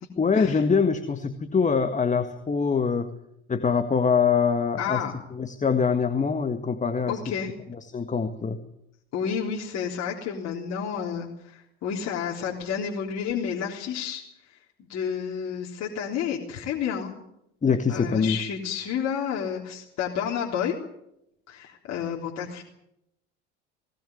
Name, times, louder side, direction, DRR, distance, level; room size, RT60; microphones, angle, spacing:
voice 1, 0.2-3.1 3.5-5.0 5.3-7.2 7.9-8.6 17.6-18.4, left 5 dB, 20° left, 7 dB, 1.9 m, -24 dB
voice 2, 4.8-5.1 7.1-7.5 9.1-14.6 14.9-17.1 17.9-20.8 21.5-22.6, left 7 dB, 50° left, -1 dB, 3.7 m, -30 dB
19.5 x 19.0 x 9.6 m, 0.81 s
hypercardioid pair, 75°, 34 cm